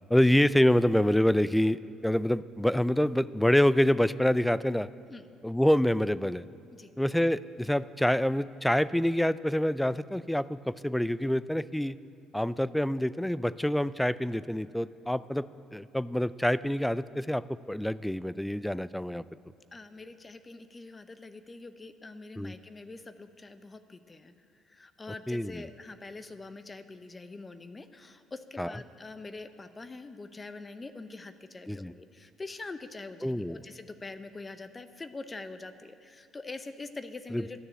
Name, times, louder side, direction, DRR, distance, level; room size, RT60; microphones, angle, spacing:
voice 1, 0.1-4.9 5.4-6.4 7.0-12.0 12.3-19.2 22.4-22.5 25.3-25.7 28.6-28.7 31.7-31.9 33.2-33.6 37.3-37.6, left 1 dB, 5° left, 17 dB, 0.3 m, -26 dB
voice 2, 19.7-24.3 24.6-37.6, left 3 dB, 25° left, 11 dB, 0.7 m, -44 dB
12.5 x 6.9 x 8.7 m, 2.5 s
hypercardioid pair, 60°, 0 cm